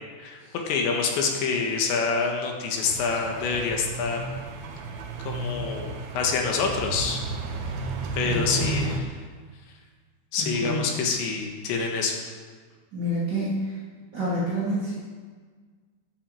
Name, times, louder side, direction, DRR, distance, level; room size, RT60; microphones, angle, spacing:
voice 1, 0.7-4.3 5.2-7.2 8.1-9.0 10.3-12.2, left 5 dB, 75° left, 1 dB, 3.7 m, -26 dB
sound 1, 2.8-9.0, right 3 dB, 70° right, 2.6 m, -33 dB
voice 2, 8.2-8.9 10.4-11.0 12.9-13.8 14.1-14.9, equal, 30° right, -7 dB, 2.0 m, -29 dB
13.5 x 8.3 x 7.6 m, 1.5 s
omnidirectional pair, 5.4 m